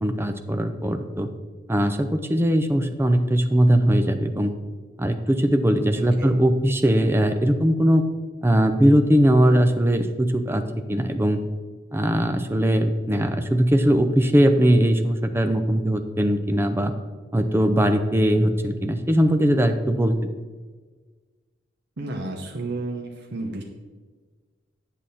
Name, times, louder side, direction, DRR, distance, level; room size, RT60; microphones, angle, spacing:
voice 1, 0.0-1.3 1.7-4.5 5.0-8.0 8.4-10.6 10.9-11.4 11.9-16.9 17.3-20.1, equal, 10° right, 7 dB, 0.5 m, -20 dB
voice 2, 5.9-6.3 22.0-23.6, right 2 dB, 60° right, 1 dB, 0.9 m, -32 dB
8.5 x 7.5 x 4.2 m, 1.4 s
head